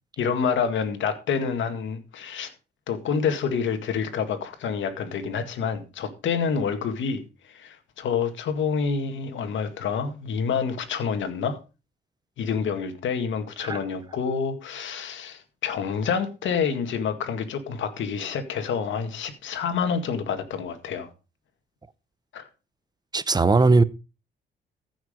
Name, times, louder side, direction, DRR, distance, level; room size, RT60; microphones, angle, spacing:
voice 1, 0.2-2.5 2.9-11.6 12.4-21.1 22.3-22.5, left 6 dB, 70° left, 1.9 m, -28 dB
voice 2, 23.1-23.8, right 3 dB, 20° right, 0.8 m, -19 dB
14.5 x 6.1 x 5.1 m
cardioid pair, 90°, 20 cm